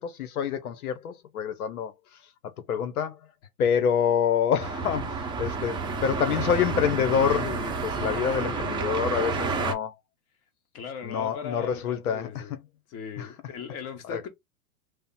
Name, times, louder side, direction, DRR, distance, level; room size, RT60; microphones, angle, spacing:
voice 1, 0.0-1.9 2.7-3.2 3.6-10.0 11.0-12.4 13.2-13.3 14.1-14.2, left 7 dB, 75° left, 0.9 m, -27 dB
sound 1, 4.6-9.7, right 4 dB, 10° right, 0.7 m, -30 dB
voice 2, 8.2-9.3 10.7-12.5 12.9-14.3, left 6 dB, 35° left, 1.3 m, -39 dB
3.4 x 2.1 x 4.1 m
hypercardioid pair, 125°, 44 cm